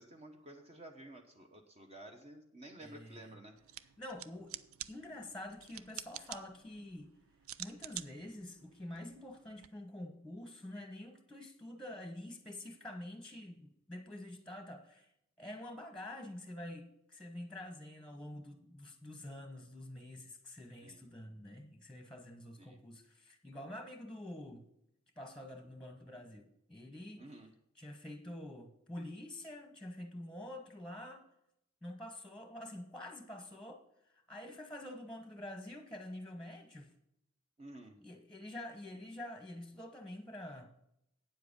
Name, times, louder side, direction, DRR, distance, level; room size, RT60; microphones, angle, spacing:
voice 1, 0.0-3.6 20.8-21.1 22.6-22.8 27.1-27.5 37.6-38.0, right 1 dB, 30° right, 1.0 m, -52 dB
voice 2, 2.8-3.4 4.0-4.5 4.9-7.1 7.6-15.1 15.4-24.7 25.2-27.2 27.8-31.2 31.8-33.8 34.3-36.9 38.0-40.7, left 1 dB, 5° left, 1.1 m, -47 dB
sound 1, 3.6-9.7, right 13 dB, 75° right, 0.4 m, -49 dB
9.1 x 7.6 x 5.2 m
head